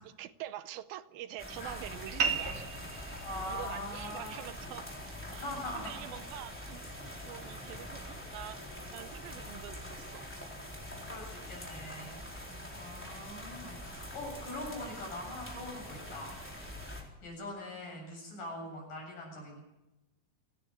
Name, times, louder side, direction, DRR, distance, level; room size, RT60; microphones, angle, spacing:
voice 1, 0.2-3.0 3.5-4.9 5.3-10.3 12.5-12.7 17.0-17.1, right 12 dB, 80° right, 13 dB, 2.6 m, -46 dB
sound 1, 1.4-17.0, left 1 dB, 5° left, 3.6 m, -44 dB
sound 2, 2.2-7.2, right 5 dB, 45° right, 2.3 m, -39 dB
voice 2, 3.2-4.4 5.2-6.1 11.0-12.3 12.7-16.3 16.9-19.6, left 1 dB, 60° left, -1 dB, 9.3 m, -42 dB
Glass, 7.5-12.1 12.4-13.1 13.5-14.0 14.6-14.9, left 3 dB, 45° left, 4.8 m, -64 dB
29.0 x 10.0 x 9.0 m, 0.97 s
omnidirectional pair, 4.3 m